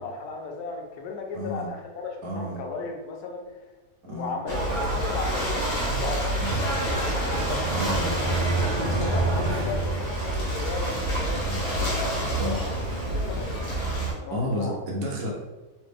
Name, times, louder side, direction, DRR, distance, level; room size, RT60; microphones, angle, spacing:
voice 1, 0.0-3.6 4.0-8.3 8.7-13.7 13.9-14.8, left 3 dB, 75° left, 1 dB, 1.1 m, -36 dB
voice 2, 1.3-1.7 2.2-2.6 4.0-4.4 6.4-6.7 7.7-8.2 11.3-11.7 12.4-12.6 14.3-15.3, equal, 65° right, -2 dB, 1.1 m, -31 dB
Ocean / Boat Water vehicle, 4.5-14.1, right 1 dB, 60° left, 1.4 m, -28 dB
sound 1, 6.3-10.7, right 2 dB, 90° right, 1.6 m, -29 dB
3.2 x 2.6 x 3.3 m, 1.2 s
omnidirectional pair, 1.7 m